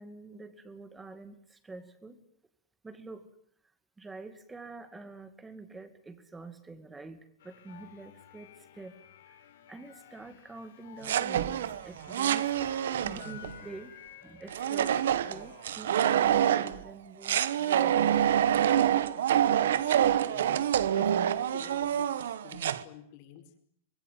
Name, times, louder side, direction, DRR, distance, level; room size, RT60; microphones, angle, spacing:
voice 1, 0.0-2.2 2.8-3.3 4.0-9.0 9.3-9.4 9.7-13.9 14.2-18.3, right 3 dB, 10° right, 11 dB, 2.2 m, -46 dB
sound 1, 7.4-15.9, left 10 dB, 75° left, 6.5 m, -53 dB
sound 2, 11.0-13.5 14.5-16.8 17.2-22.8, right 10 dB, 85° right, 1.3 m, -26 dB
voice 2, 19.4-19.7 20.3-20.6 20.9-23.4, left 10 dB, 45° left, 5 dB, 4.9 m, -50 dB
25.5 x 22.0 x 9.2 m, 0.64 s
supercardioid pair, 165°, 0 cm